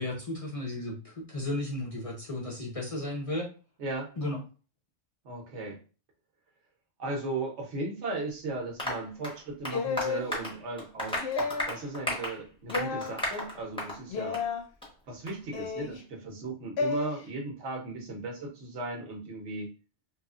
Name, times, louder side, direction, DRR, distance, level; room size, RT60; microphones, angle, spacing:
voice 1, 0.0-3.5 4.2-4.4, left 1 dB, 40° left, -2 dB, 0.5 m, -34 dB
voice 2, 3.8-4.1 5.2-5.8 7.0-14.4 15.1-19.7, right 2 dB, 75° right, 2 dB, 1.1 m, -37 dB
Applause, 8.8-14.0 14.3-14.5 14.8-14.9 15.3-15.4, left 1 dB, 5° left, 0.8 m, -35 dB
sound 1, 9.7-10.3 11.2-11.8 12.7-13.1 14.1-14.6 15.5-16.0 16.8-17.1, left 4 dB, 70° left, 0.8 m, -31 dB
3.0 x 2.4 x 2.3 m, 0.35 s
omnidirectional pair, 1.2 m